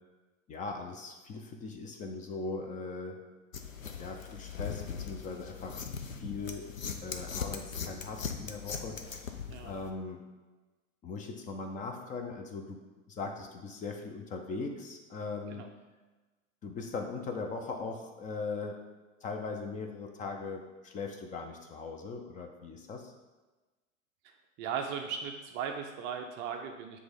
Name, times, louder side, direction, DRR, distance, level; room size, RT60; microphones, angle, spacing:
voice 1, 0.5-3.2 4.0-5.9 6.2-6.7 7.0-10.2 11.0-12.8 13.1-15.6 16.6-18.8 19.2-23.1, left 4 dB, 20° left, 3 dB, 0.6 m, -40 dB
sound 1, 3.5-9.9, left 6 dB, 80° left, 0.7 m, -40 dB
voice 2, 24.6-27.0, right 7 dB, 30° right, 4 dB, 0.5 m, -37 dB
7.8 x 3.3 x 5.1 m, 1.2 s
figure-of-eight pair, 95°, 39 cm